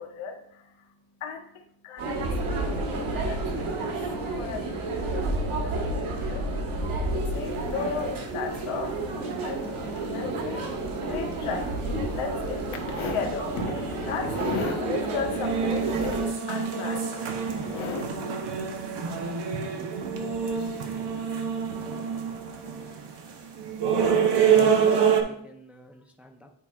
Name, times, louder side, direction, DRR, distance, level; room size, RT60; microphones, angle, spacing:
voice 1, 0.0-6.5 6.9-9.0 9.4-9.6 9.9-10.6 11.1-11.7 11.9-16.2 16.5-17.1 17.5-18.1, left 5 dB, 80° left, 3 dB, 1.3 m, -35 dB
sound 1, 2.0-16.3, right 2 dB, 90° right, 1.6 m, -30 dB
sound 2, 7.4-8.3 8.5-8.7 9.1-9.2 9.6-9.7 9.9-10.0 10.4-10.5 11.1-11.2 11.5-11.8 12.3-12.4 13.0-13.4 13.6-14.1 14.5-14.6 14.9-25.2, right 7 dB, 55° right, 0.9 m, -27 dB
voice 2, 24.5-26.5, equal, 5° right, 2 dB, 0.5 m, -45 dB
9.7 x 4.7 x 2.3 m, 0.71 s
cardioid pair, 130°, 48 cm